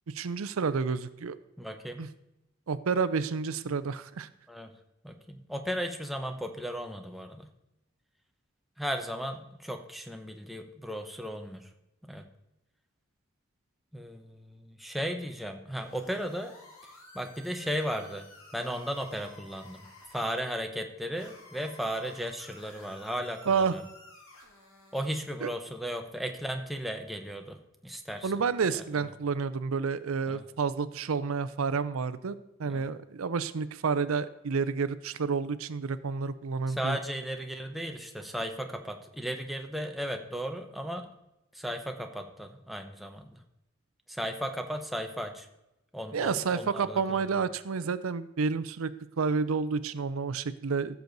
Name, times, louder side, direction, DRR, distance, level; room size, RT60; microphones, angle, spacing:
voice 1, 0.1-1.4 2.0-2.1 2.7-4.3 23.5-23.7 25.4-25.5 28.2-37.0 46.1-48.9 49.2-51.0, right 5 dB, 85° right, 14 dB, 0.5 m, -30 dB
voice 2, 1.6-2.1 4.5-4.7 5.0-7.5 8.8-11.7 12.0-12.2 13.9-16.5 17.1-18.2 18.5-19.8 20.1-23.8 24.9-28.3 28.8-29.0 30.3-30.4 32.6-32.9 36.7-41.1 41.5-43.4 44.1-45.5 45.9-47.2, equal, ahead, 4 dB, 0.8 m, -35 dB
sound 1, 15.7-20.4 21.2-25.3, left 2 dB, 85° left, 2.9 m, -53 dB
15.0 x 7.0 x 4.0 m, 0.91 s
head